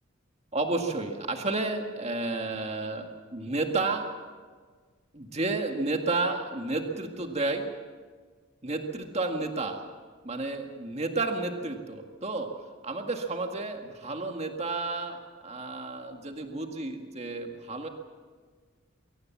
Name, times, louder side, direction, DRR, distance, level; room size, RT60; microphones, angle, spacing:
voice 1, 0.5-4.1 5.1-7.6 8.6-9.8 10.2-12.5 12.8-17.9, right 3 dB, 30° right, 4 dB, 1.9 m, -31 dB
23.0 x 18.0 x 7.3 m, 1.5 s
head